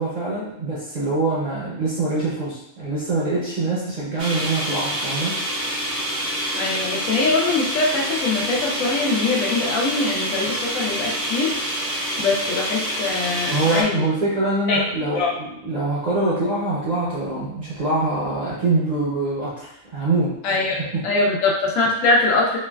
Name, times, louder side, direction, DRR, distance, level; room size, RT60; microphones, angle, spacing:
voice 1, 0.0-5.4 13.5-20.4 20.9-21.0, right 2 dB, 45° right, -7 dB, 0.5 m, -24 dB
sound 1, 4.2-13.8, equal, 70° right, 1.0 m, -27 dB
voice 2, 6.5-11.6 12.2-14.0 14.7-14.8 15.1-15.3 20.4-22.6, left 3 dB, 85° left, -2 dB, 1.0 m, -22 dB
3.1 x 2.2 x 2.2 m, 0.78 s
omnidirectional pair, 1.3 m